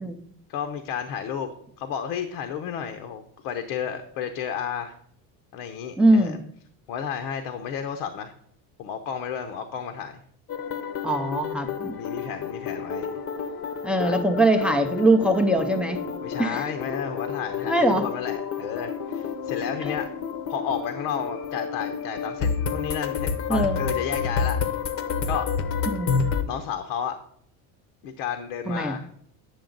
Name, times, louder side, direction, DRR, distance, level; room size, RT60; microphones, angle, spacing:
voice 1, 0.5-1.5 1.8-5.0 5.5-6.4 6.9-8.3 8.8-10.2 12.0-13.1 14.0-14.2 16.2-20.1 20.5-24.6 25.3-25.5 26.5-27.2 28.0-29.2, left 8 dB, 75° left, 6 dB, 0.9 m, -32 dB
voice 2, 6.0-6.4 11.0-11.9 13.8-16.0 16.4-16.7 17.6-18.0 19.8-19.9 23.5-23.8 25.9-26.1 28.7-29.0, right 1 dB, 5° right, 5 dB, 0.4 m, -22 dB
sound 1, 10.5-26.4, left 6 dB, 35° left, 0.7 m, -30 dB
9.1 x 6.7 x 3.9 m, 0.64 s
cardioid pair, 145°, 40 cm